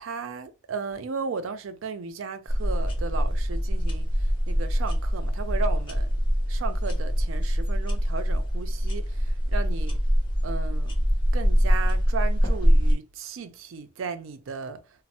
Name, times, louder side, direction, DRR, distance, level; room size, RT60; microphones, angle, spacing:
voice 1, 0.0-6.1 6.5-10.0 10.4-11.0 11.3-14.8, right 5 dB, 85° right, 0.4 m, -35 dB
sound 1, 2.5-12.9, equal, 25° left, 0.8 m, -24 dB
3.1 x 2.0 x 2.7 m
head